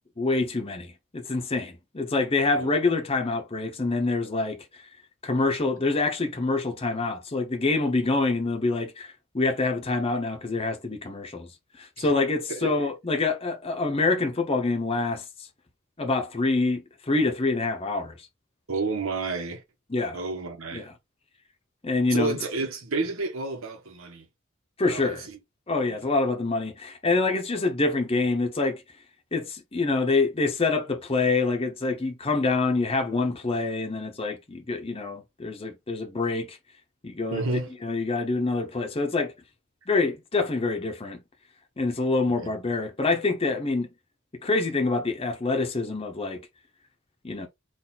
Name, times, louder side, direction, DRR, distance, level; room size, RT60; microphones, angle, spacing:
voice 1, 0.2-4.9 5.2-11.5 11.8-15.2 16.0-18.1 19.9-20.2 20.7-20.9 21.8-22.3 24.8-25.3 25.7-28.8 29.3-36.6 37.0-37.4 37.8-39.3 39.9-41.2 41.8-43.9 44.4-46.4 47.2-47.5, left 3 dB, 30° left, 0.8 m, -26 dB
voice 2, 12.5-12.9 18.7-19.6 20.1-20.9 22.1-24.3 24.9-25.4 25.8-26.1 37.3-37.7 42.4-42.5, right 3 dB, 85° right, 1.3 m, -31 dB
3.9 x 2.6 x 4.0 m
head